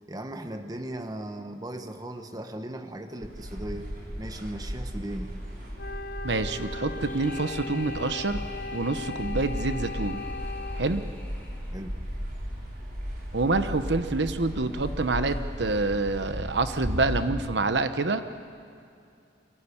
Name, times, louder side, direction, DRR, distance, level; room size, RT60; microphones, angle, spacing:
voice 1, 0.1-3.9 4.2-5.3 11.7-12.0, right 1 dB, 20° right, 7 dB, 1.2 m, -37 dB
sound 1, 3.2-17.3, equal, 55° right, 5.4 m, -36 dB
Wind instrument woodwind instrument, 5.8-11.0, left 3 dB, 55° left, 0.8 m, -38 dB
voice 2, 6.2-8.4 8.7-10.2 10.7-11.0 13.3-18.2, right 3 dB, 80° right, 10 dB, 1.0 m, -27 dB
sound 2, 6.9-12.0, left 1 dB, 10° left, 2.6 m, -48 dB
24.5 x 16.5 x 9.9 m, 2.4 s
head